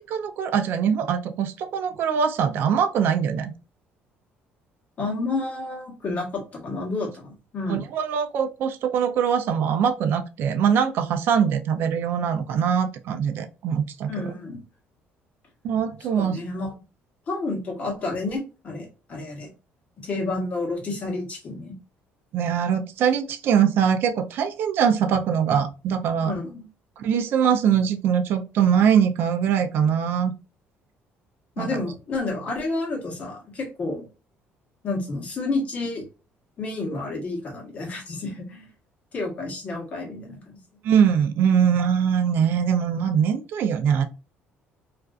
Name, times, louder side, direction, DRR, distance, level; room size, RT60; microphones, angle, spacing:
voice 1, 0.1-3.5 7.7-14.3 15.6-16.4 22.3-26.3 27.0-30.3 31.6-31.8 40.8-44.0, right 7 dB, 55° right, 8 dB, 0.3 m, -22 dB
voice 2, 5.0-7.8 14.1-14.6 16.2-16.7 17.3-19.5 20.0-21.7 26.2-26.6 31.6-34.1 34.8-36.0 36.6-38.7 39.1-40.6, left 3 dB, 35° left, 0 dB, 0.9 m, -30 dB
2.4 x 2.3 x 2.2 m, 0.32 s
cardioid pair, 155°, 4 cm